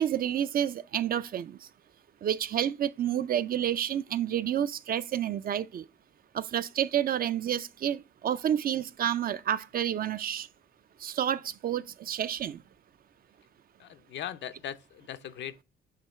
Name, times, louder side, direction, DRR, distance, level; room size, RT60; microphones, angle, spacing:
voice 1, 0.0-1.6 2.2-5.8 6.3-10.5 11.0-12.6, right 10 dB, 50° right, 0.4 m, -29 dB
voice 2, 13.8-15.6, left 10 dB, 65° left, 0.6 m, -39 dB
7.5 x 3.0 x 4.2 m
cardioid pair, 90°, 20 cm